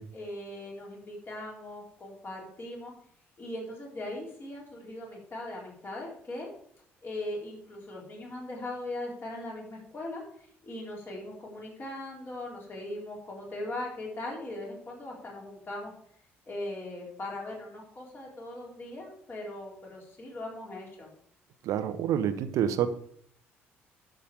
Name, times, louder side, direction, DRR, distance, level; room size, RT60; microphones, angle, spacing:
voice 1, 0.1-2.9 3.4-6.5 7.0-10.2 10.6-15.9 16.5-21.1, left 1 dB, 35° left, -2 dB, 4.1 m, -39 dB
voice 2, 21.6-22.9, right 9 dB, 55° right, 11 dB, 0.9 m, -27 dB
11.5 x 6.8 x 5.0 m, 0.64 s
figure-of-eight pair, 50°, 6 cm